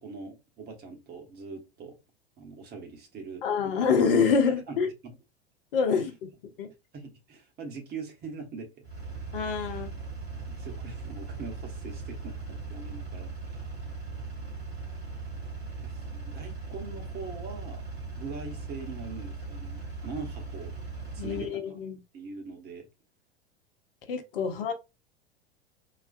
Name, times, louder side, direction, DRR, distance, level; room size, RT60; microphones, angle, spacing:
voice 1, 0.0-2.0 2.4-4.0 4.5-5.2 5.9-6.1 6.9-8.7 9.7-9.8 10.5-13.6 15.8-17.8 18.2-20.7 21.1-21.8 22.1-22.9 24.4-24.6, right 4 dB, 30° right, 1.0 m, -42 dB
voice 2, 3.4-4.9 5.7-6.1 6.6-6.7 9.3-9.9 21.2-22.0 24.1-24.7, left 5 dB, 60° left, 0.9 m, -26 dB
Engine, 8.8-21.5, right 4 dB, 75° right, 2.1 m, -39 dB
4.0 x 2.3 x 2.4 m
figure-of-eight pair, 85°, 32 cm